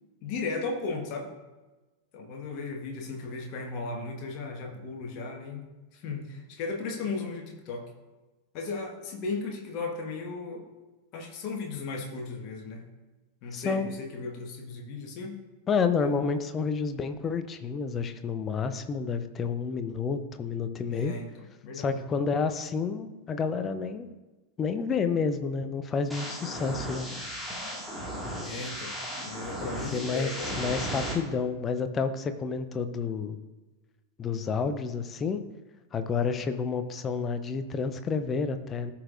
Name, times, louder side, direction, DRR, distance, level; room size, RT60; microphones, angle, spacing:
voice 1, 0.2-1.3 2.1-5.6 5.9-7.9 8.5-10.7 11.1-12.9 13.4-15.4 16.0-16.2 20.9-22.0 28.4-28.9 29.2-30.6, left 3 dB, 40° left, 1 dB, 1.3 m, -36 dB
voice 2, 13.5-13.9 15.7-21.1 21.8-24.1 24.6-27.1 29.9-30.3 30.6-33.4 34.2-35.4 35.9-38.9, left 5 dB, 25° left, 9 dB, 0.7 m, -29 dB
sound 1, 26.1-31.1, equal, ahead, 1.9 m, -36 dB
14.0 x 5.9 x 2.5 m, 1.2 s
figure-of-eight pair, 90°, 0 cm